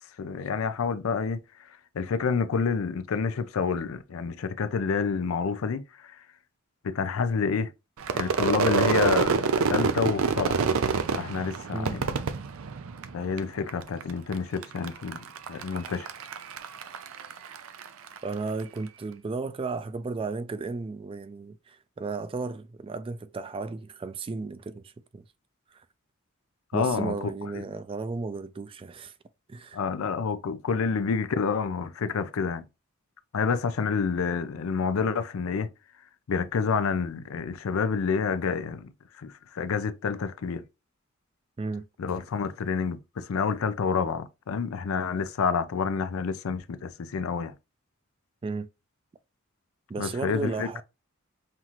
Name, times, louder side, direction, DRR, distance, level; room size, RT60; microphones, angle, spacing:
voice 1, 0.2-6.2 6.8-7.7 8.1-10.6 11.1-12.1 13.1-16.1 26.7-27.3 27.5-27.6 29.7-32.7 33.3-35.7 36.3-40.6 42.0-47.5 50.0-50.7, left 5 dB, 90° left, 0.4 m, -28 dB
Crowd / Fireworks, 8.0-13.4 13.7-14.3 14.6-18.2, right 5 dB, 85° right, 0.5 m, -27 dB
voice 2, 18.2-25.2 26.7-29.1 29.5-29.8 41.6-41.9 48.4-48.7 49.9-50.8, right 3 dB, 25° right, 0.3 m, -34 dB
5.6 x 2.4 x 2.9 m
head